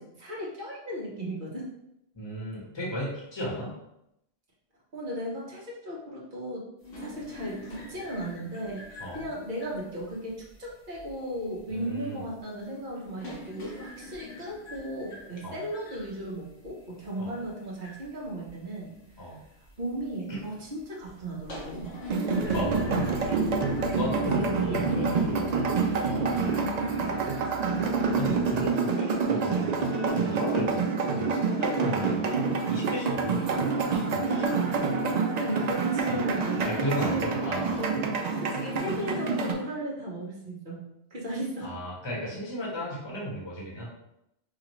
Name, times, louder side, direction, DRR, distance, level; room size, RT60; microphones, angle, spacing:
voice 1, 0.0-1.7 4.9-6.7 7.0-8.9 9.1-19.3 19.8-21.9 24.2-25.2 26.7-27.9 35.3-37.4 38.4-40.8 41.1-41.7, right 1 dB, 45° right, -4 dB, 1.1 m, -36 dB
voice 2, 2.1-3.7 9.0-9.2 11.7-12.2 15.4-15.6 17.2-17.3 19.2-19.4 20.3-20.4 22.5-23.4 23.9-26.6 28.2-34.6 36.1-36.2 36.6-37.9 41.6-43.9, equal, 25° left, -5 dB, 1.1 m, -35 dB
sound 1, 6.8-24.0, left 1 dB, 75° left, 1.4 m, -47 dB
sound 2, 22.1-39.5, right 4 dB, 75° right, 0.3 m, -27 dB
Bass guitar, 22.4-28.7, right 6 dB, 55° left, 1.5 m, -42 dB
4.9 x 2.4 x 3.0 m, 0.83 s
omnidirectional pair, 1.2 m